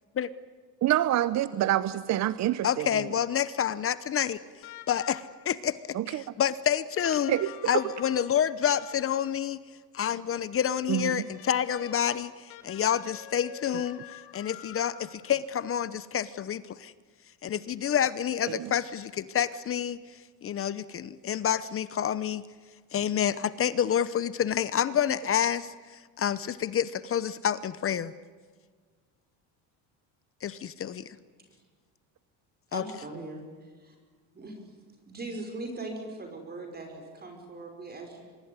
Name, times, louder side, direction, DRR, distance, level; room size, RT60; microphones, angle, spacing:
voice 1, 0.8-3.0 5.9-6.2 7.3-7.5 10.9-11.3 18.5-18.7, right 13 dB, 45° right, 15 dB, 0.8 m, -27 dB
voice 2, 2.6-4.4 4.9-5.8 6.1-7.3 7.7-9.6 9.9-14.0 14.3-16.9 17.4-20.0 20.4-22.4 22.9-25.7 26.2-28.1 30.4-31.0 32.7-32.8, left 9 dB, 35° left, 16 dB, 0.9 m, -28 dB
sound 1, 4.6-5.6 7.0-9.5 10.9-15.4 16.7-16.8, left 13 dB, 80° left, 2.7 m, -47 dB
voice 3, 32.7-34.0 34.3-34.8 35.1-38.2, right 2 dB, 25° right, 3 dB, 5.4 m, -40 dB
25.0 x 22.0 x 9.6 m, 1.6 s
cardioid pair, 120°, 37 cm